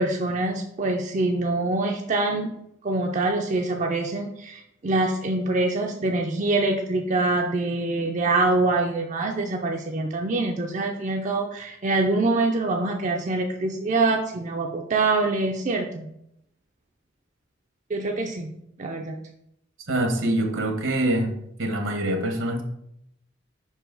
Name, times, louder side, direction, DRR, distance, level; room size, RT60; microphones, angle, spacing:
voice 1, 0.0-2.5 2.8-16.1 17.9-18.5 18.8-19.2, right 2 dB, 35° right, 2 dB, 0.5 m, -25 dB
voice 2, 19.9-21.3 21.6-22.6, right 1 dB, 75° right, 4 dB, 1.1 m, -24 dB
5.2 x 4.8 x 3.9 m, 0.78 s
head